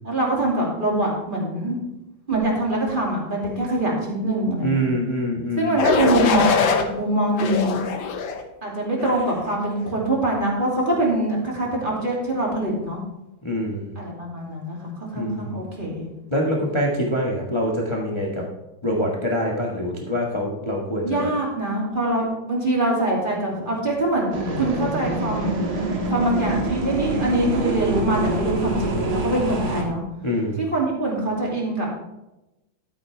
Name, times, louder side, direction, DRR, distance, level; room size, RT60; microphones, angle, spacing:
voice 1, 0.0-1.8 2.3-4.8 5.6-7.8 8.6-13.0 14.0-16.1 21.0-25.5 26.1-30.0 30.6-31.9, right 1 dB, 25° right, -3 dB, 2.8 m, -24 dB
voice 2, 4.6-5.8 13.4-13.9 15.1-15.6 16.3-18.4 18.8-21.3 30.2-30.6, equal, 15° left, -2 dB, 1.3 m, -25 dB
sound 1, 5.8-6.8 7.4-8.4 9.0-9.4, left 5 dB, 70° left, 1.7 m, -22 dB
sound 2, 24.3-29.8, right 2 dB, 50° right, 2.1 m, -26 dB
12.0 x 9.3 x 3.4 m, 0.96 s
omnidirectional pair, 2.2 m